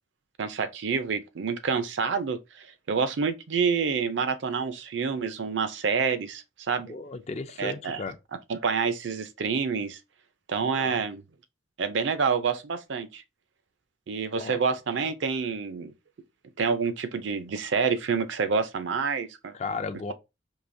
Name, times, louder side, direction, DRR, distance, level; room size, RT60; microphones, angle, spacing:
voice 1, 0.4-6.9 7.6-8.0 8.5-10.0 10.5-11.2 11.8-13.2 14.1-15.9 16.6-19.5, right 5 dB, 70° right, 0.5 m, -28 dB
voice 2, 6.9-8.2 10.8-11.0 14.4-14.6 19.5-20.1, left 4 dB, 35° left, 0.4 m, -35 dB
4.7 x 2.7 x 2.6 m
head